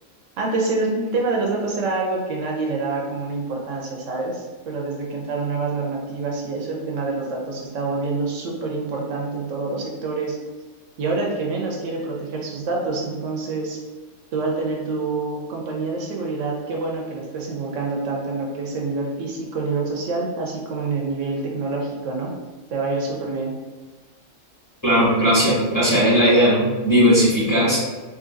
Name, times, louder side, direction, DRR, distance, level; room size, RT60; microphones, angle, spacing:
voice 1, 0.4-10.4 11.0-13.8 14.3-22.3 22.7-23.5, right 3 dB, 75° right, -1 dB, 0.9 m, -26 dB
voice 2, 24.8-27.8, equal, 15° left, -10 dB, 1.5 m, -17 dB
3.8 x 2.6 x 2.5 m, 1.3 s
omnidirectional pair, 1.3 m